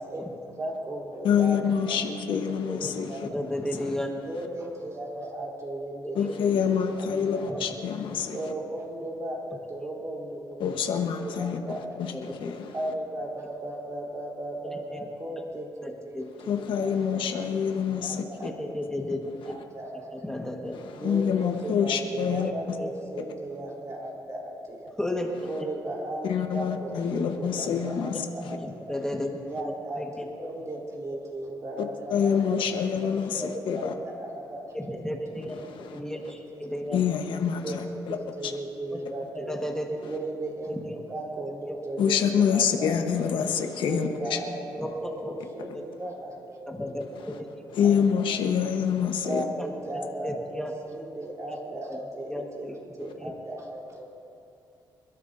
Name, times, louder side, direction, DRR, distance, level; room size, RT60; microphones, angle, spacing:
voice 1, 0.0-3.2 4.2-7.9 8.3-12.3 12.7-17.0 17.5-17.6 18.0-19.0 19.4-20.3 20.9-24.9 25.4-29.0 29.5-30.0 30.4-35.0 35.3-36.0 36.5-36.6 37.6-39.5 40.0-40.8 41.1-43.4 43.8-46.8 47.2-47.9 48.3-48.4 49.2-52.7 53.0-54.1, right 1 dB, 40° right, 3.6 m, -37 dB
voice 2, 1.2-3.3 6.1-8.4 10.6-11.6 12.0-12.7 16.4-18.5 21.0-22.5 26.2-28.2 32.1-33.9 36.9-38.2 38.4-38.5 42.0-44.4 47.8-49.4, left 7 dB, 80° left, 1.1 m, -26 dB
voice 3, 2.3-2.9 3.3-4.1 6.0-6.4 7.5-7.6 8.0-8.2 10.6-10.7 12.1-12.5 14.9-15.0 15.8-16.3 17.1-17.2 18.4-19.2 20.1-20.7 22.8-22.9 25.0-25.4 28.6-29.3 29.6-30.2 32.7-33.1 33.4-33.5 34.7-35.6 35.9-37.0 37.7-37.8 39.3-39.9 40.7-41.0 41.6-41.8 43.6-43.7 44.8-44.9 45.2-45.3 46.7-47.6 49.6-49.7 50.2-50.7 51.5-51.6 51.9-52.0 52.3-52.7 53.2-53.3, left 1 dB, 5° left, 1.5 m, -34 dB
28.0 x 12.5 x 2.7 m
cardioid pair, 95°, 8 cm